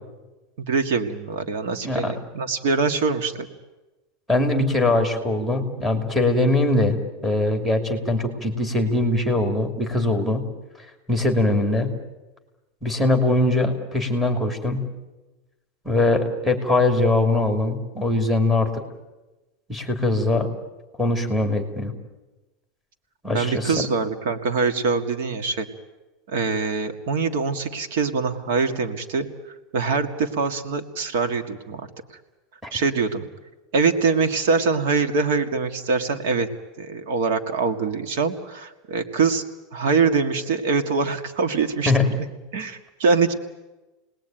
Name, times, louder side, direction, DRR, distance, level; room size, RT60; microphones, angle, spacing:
voice 1, 0.6-3.5 23.3-25.7 26.3-29.3 29.7-31.9 32.7-33.3 33.7-36.5 36.8-39.4 39.7-42.3 42.5-43.3, right 4 dB, 75° right, 8 dB, 1.9 m, -23 dB
voice 2, 4.3-10.4 11.1-11.9 12.8-14.9 15.8-18.8 19.7-20.5 21.0-21.9 23.2-23.9 32.6-32.7 41.9-42.1, left 2 dB, 5° right, 5 dB, 2.9 m, -22 dB
29.5 x 20.0 x 9.1 m, 1.1 s
supercardioid pair, 160°, 0 cm